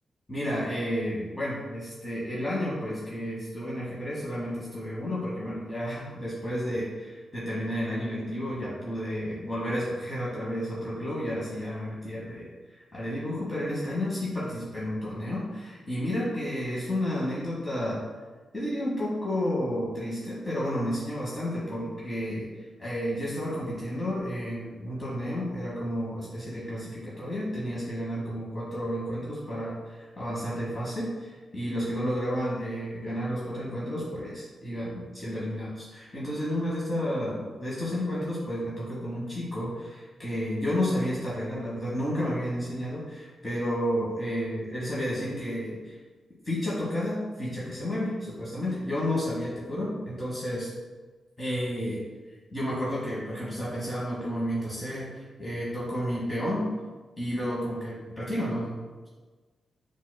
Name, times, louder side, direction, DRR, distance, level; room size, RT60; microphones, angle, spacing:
voice 1, 0.3-18.0 18.5-22.5 22.8-46.0 46.4-50.7 51.4-52.0 52.5-56.7 57.2-59.1, equal, 30° left, -8 dB, 1.1 m, -31 dB
4.2 x 2.4 x 2.2 m, 1.3 s
supercardioid pair, 50°, 0 cm